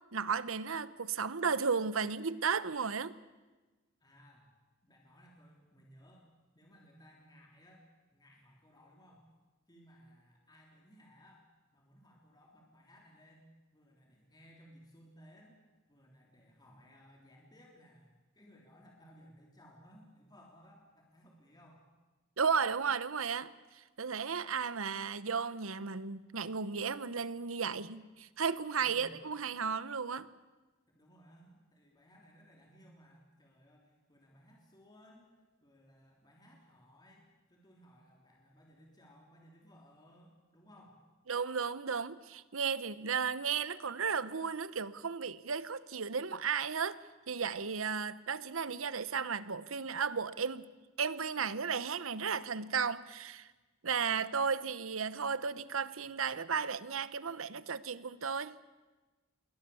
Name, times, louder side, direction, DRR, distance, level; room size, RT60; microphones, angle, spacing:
voice 1, 0.1-3.1 22.4-30.3 41.3-47.0 47.3-50.7 51.0-53.5 53.8-58.6, right 6 dB, 90° right, 1.0 m, -34 dB
voice 2, 4.0-4.5 4.8-9.3 9.7-15.6 15.9-21.8 28.8-29.1 30.9-41.0, equal, 20° left, 3.4 m, -60 dB
28.0 x 22.5 x 7.1 m
head